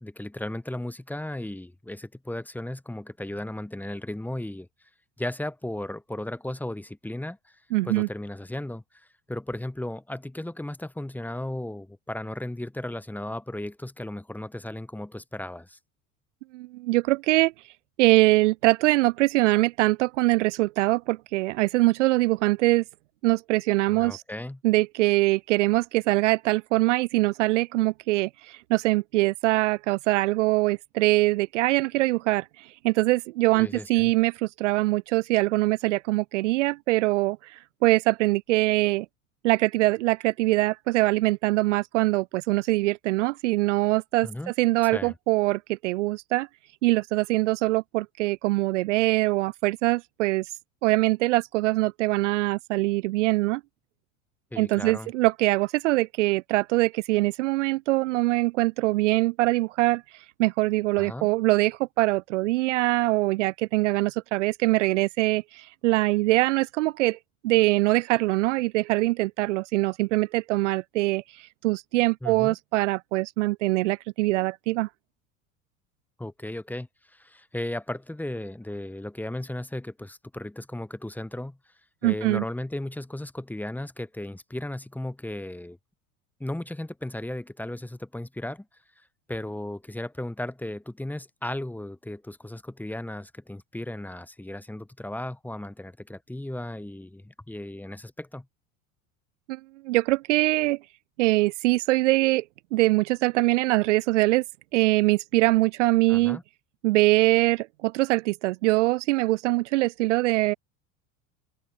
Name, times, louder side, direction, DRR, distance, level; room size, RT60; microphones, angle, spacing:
voice 1, 0.0-4.7 5.2-7.5 7.8-15.8 23.9-24.6 33.5-34.1 44.2-44.5 44.8-45.1 54.5-55.1 61.0-61.3 72.2-72.5 76.2-81.6 82.0-85.8 86.4-88.7 89.3-98.5 106.1-106.4, left 1 dB, 5° left, 1.4 m, -35 dB
voice 2, 7.7-8.1 16.5-17.5 18.0-22.8 23.2-24.2 24.6-39.1 39.4-46.5 46.8-50.5 50.8-53.6 54.6-67.2 67.4-74.9 82.0-82.4 99.5-100.8 101.2-102.4 102.7-104.4 104.7-106.4 106.8-110.5, right 19 dB, 60° right, 0.6 m, -23 dB
open air
figure-of-eight pair, 70°, 42 cm